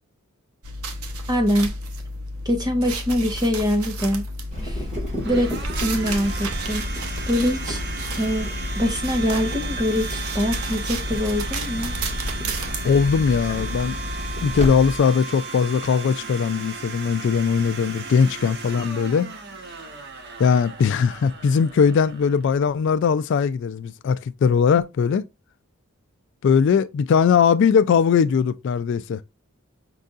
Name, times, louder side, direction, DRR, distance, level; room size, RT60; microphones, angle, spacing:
sound 1, 0.6-15.0, equal, 85° right, 0.9 m, -32 dB
voice 1, 1.3-1.7 2.4-4.3 4.6-4.8 5.2-5.5 5.8-6.8 7.3-7.8 8.2-8.5 8.7-11.9, equal, 20° right, 1.0 m, -23 dB
Domestic sounds home sounds, 4.2-23.0, right 4 dB, 50° right, 0.9 m, -36 dB
Water tap faucet / Drip, 4.5-14.7, left 1 dB, 35° right, 1.9 m, -33 dB
voice 2, 12.8-14.0 14.4-19.3 20.4-25.2 26.4-29.2, left 6 dB, 55° left, 0.3 m, -20 dB
5.4 x 3.9 x 2.4 m
head